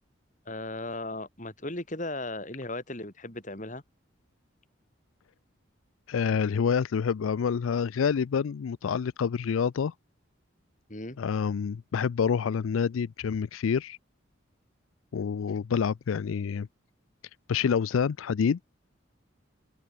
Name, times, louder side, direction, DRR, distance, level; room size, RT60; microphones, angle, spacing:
voice 1, 0.5-3.8 10.9-11.2, left 2 dB, 40° left, 3.7 m, -36 dB
voice 2, 6.1-9.9 11.2-14.0 15.1-16.7 17.5-18.7, left 6 dB, 85° left, 0.4 m, -27 dB
open air
head